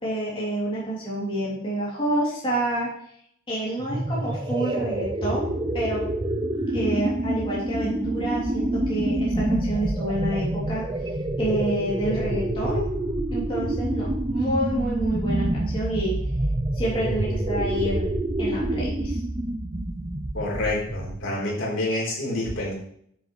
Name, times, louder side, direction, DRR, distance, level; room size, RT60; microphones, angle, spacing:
voice 1, 0.0-2.9 3.5-6.0 6.7-10.8 11.4-12.9 13.3-16.2 16.7-18.1 18.4-19.2, right 1 dB, 25° left, -6 dB, 3.1 m, -28 dB
sound 1, 3.8-21.4, right 1 dB, 20° right, 0.5 m, -27 dB
voice 2, 20.3-22.7, left 1 dB, 65° left, -4 dB, 4.0 m, -27 dB
9.9 x 7.7 x 3.3 m, 0.67 s
head